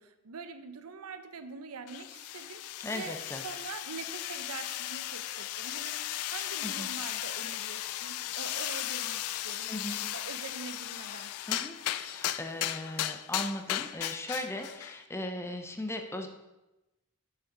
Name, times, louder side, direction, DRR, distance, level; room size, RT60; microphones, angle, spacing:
voice 1, 0.0-11.3, right 5 dB, 75° right, 9 dB, 0.7 m, -44 dB
sound 1, 1.9-15.0, left 13 dB, 75° left, 0.4 m, -36 dB
voice 2, 2.8-3.4 6.6-6.9 9.7-10.0 11.5-16.3, left 1 dB, 10° left, 5 dB, 0.7 m, -38 dB
6.8 x 6.4 x 4.7 m, 0.98 s
head